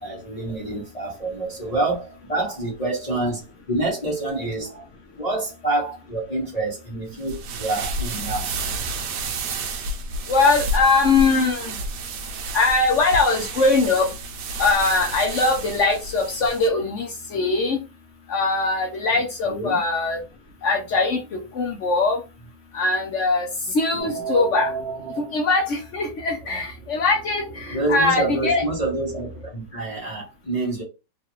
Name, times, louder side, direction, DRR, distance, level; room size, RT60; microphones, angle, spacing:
voice 1, 0.0-3.4 3.7-4.9 5.2-8.6 19.5-19.8 23.9-24.2 26.4-26.6 27.7-30.8, right 2 dB, 30° left, 0.9 m, -27 dB
sound 1, 7.2-16.7, right 2 dB, 80° right, 1.2 m, -30 dB
voice 2, 10.3-11.7 12.5-14.1 14.6-17.8 18.3-20.2 20.6-22.2 22.7-23.5 23.7-24.7 25.2-28.6, left 3 dB, 60° left, 0.8 m, -21 dB
sound 2, 24.0-29.5, right 5 dB, 35° right, 1.1 m, -35 dB
3.2 x 2.4 x 3.0 m
omnidirectional pair, 1.8 m